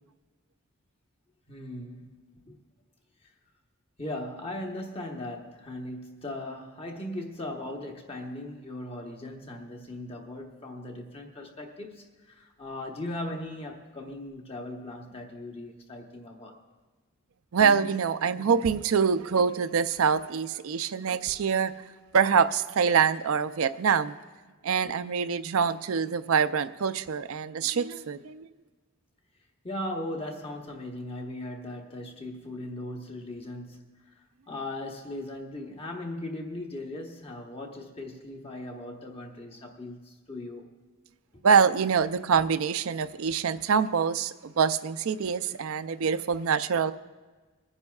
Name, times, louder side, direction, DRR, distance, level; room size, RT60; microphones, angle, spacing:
voice 1, 1.5-2.6 3.2-3.3 4.0-16.6 29.6-40.7, left 1 dB, 25° left, 2 dB, 1.1 m, -38 dB
voice 2, 17.5-21.7 22.1-24.2 24.6-28.4 41.4-46.9, right 6 dB, 80° right, 12 dB, 0.5 m, -25 dB
24.0 x 9.7 x 2.4 m, 1.3 s
head